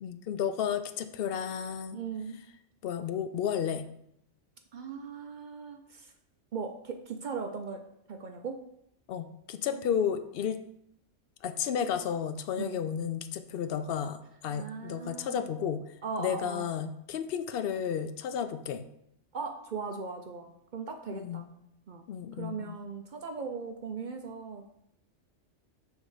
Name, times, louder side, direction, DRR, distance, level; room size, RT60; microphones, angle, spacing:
voice 1, 0.0-2.0 2.8-3.9 9.1-10.6 11.4-15.8 16.2-18.9 21.1-21.5 22.1-22.8, left 8 dB, 60° left, 11 dB, 0.6 m, -32 dB
voice 2, 1.9-2.4 4.7-6.1 6.5-7.8 8.1-8.6 9.7-9.8 12.6-12.8 14.5-15.4 16.0-16.7 19.3-21.4 21.9-22.1 22.4-24.8, right 5 dB, 55° right, 5 dB, 0.6 m, -38 dB
6.3 x 3.6 x 4.8 m, 0.75 s
omnidirectional pair, 1.3 m